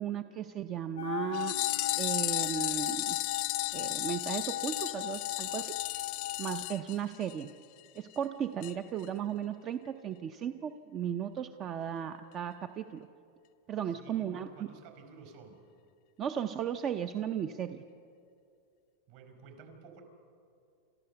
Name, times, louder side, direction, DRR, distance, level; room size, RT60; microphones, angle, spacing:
voice 1, 0.0-1.6 2.0-3.2 3.7-6.1 6.4-7.5 7.9-13.1 13.7-14.5 16.2-17.8, right 9 dB, 30° right, 9 dB, 0.5 m, -36 dB
sound 1, 1.0-6.7, left 11 dB, 85° left, 0.7 m, -37 dB
sound 2, 1.3-7.5 7.8-7.9 8.1-8.2 8.6-8.7 9.0-9.1, left 21 dB, 45° left, 0.5 m, -35 dB
voice 2, 13.8-15.7 19.1-20.0, right 5 dB, 60° right, 5 dB, 4.7 m, -52 dB
28.5 x 13.5 x 6.8 m, 2.5 s
supercardioid pair, 150°, 0 cm